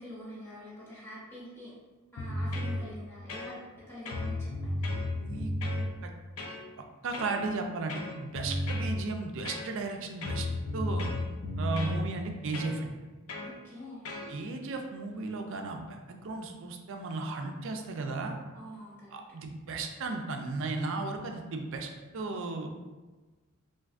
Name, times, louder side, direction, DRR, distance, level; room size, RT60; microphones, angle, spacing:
voice 1, 0.0-1.7 2.1-3.6 3.9-4.9 13.4-14.2 18.5-19.2, equal, 10° left, -10 dB, 0.8 m, -45 dB
sound 1, 2.2-2.8 3.3-3.8 4.1-5.8 6.4-6.6 7.1-7.4 7.9-9.0 9.5-9.9 10.2-12.0 12.5-12.8 13.3-13.5 14.1-14.3, left 1 dB, 80° left, 0.5 m, -33 dB
voice 2, 5.2-6.1 7.0-10.5 10.7-11.1 11.6-12.9 14.3-18.3 19.1-22.7, right 3 dB, 60° right, 4 dB, 0.4 m, -35 dB
3.4 x 2.5 x 2.4 m, 1.2 s
head